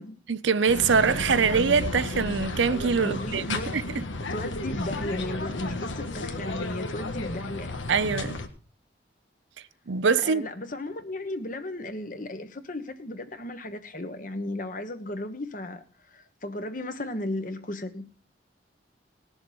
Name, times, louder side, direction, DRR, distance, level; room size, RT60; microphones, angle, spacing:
voice 1, 0.3-4.0 7.9-8.4 9.9-10.5, right 5 dB, 75° right, 0.6 m, -24 dB
sound 1, 0.7-8.5, left 2 dB, 85° left, 1.5 m, -33 dB
voice 2, 3.0-3.8 4.3-7.7 10.2-15.8 16.1-18.1, left 1 dB, 45° left, 1.3 m, -35 dB
19.0 x 7.1 x 5.2 m
head